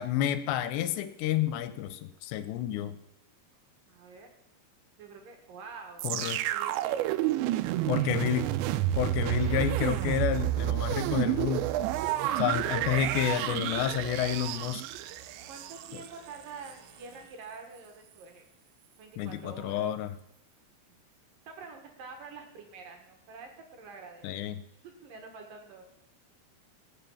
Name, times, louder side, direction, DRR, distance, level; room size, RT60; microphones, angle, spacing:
voice 1, 0.0-3.0 6.0-6.4 7.9-8.5 9.0-11.7 12.4-14.8 15.9-16.0 19.2-20.1 24.2-24.6, left 10 dB, 80° left, 11 dB, 3.0 m, -30 dB
voice 2, 3.9-4.3 5.0-7.2 7.8-8.5 15.2-18.5 19.0-19.9 20.9-21.0 21.4-24.3 25.0-25.9, right 4 dB, 60° right, 3 dB, 2.9 m, -47 dB
sound 1, 6.0-16.1 16.7-16.8, right 14 dB, 90° right, 2.9 m, -30 dB
sound 2, 10.8-17.2, right 1 dB, 35° right, 2.3 m, -57 dB
19.0 x 6.6 x 7.1 m, 0.83 s
omnidirectional pair, 5.0 m